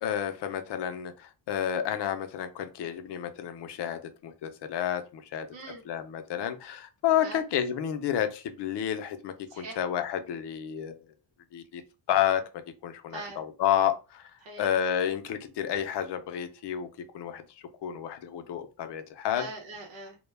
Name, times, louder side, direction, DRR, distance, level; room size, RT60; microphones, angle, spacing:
voice 1, 0.0-5.5 5.9-11.0 11.5-11.8 12.1-12.4 12.8-14.3 14.6-16.9 17.1-17.4 17.8-19.5, left 10 dB, 65° left, 0.5 m, -30 dB
voice 2, 5.5-5.8 7.2-7.4 9.5-9.8 13.1-13.4 14.4-14.7 19.3-20.1, right 3 dB, 80° right, 0.8 m, -41 dB
2.2 x 2.1 x 3.1 m
cardioid pair, 140°, 45 cm